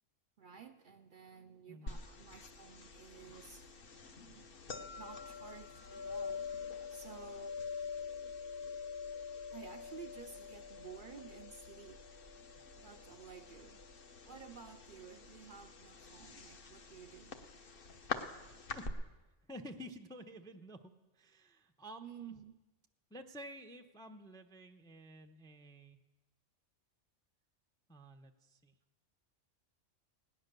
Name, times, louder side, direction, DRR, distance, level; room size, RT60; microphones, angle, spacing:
voice 1, 0.4-3.7 4.3-4.5 5.0-6.5 6.9-7.6 9.5-12.0 12.8-13.8 14.2-17.4 22.0-22.6, right 7 dB, 55° right, 7 dB, 0.6 m, -53 dB
voice 2, 1.7-2.0 18.7-18.8 19.4-22.4 23.1-26.0 27.9-28.7, equal, 5° left, 5 dB, 0.4 m, -51 dB
sound 1, 1.9-18.9, left 5 dB, 50° left, 1.0 m, -46 dB
17.0 x 10.0 x 6.7 m, 1.1 s
omnidirectional pair, 1.3 m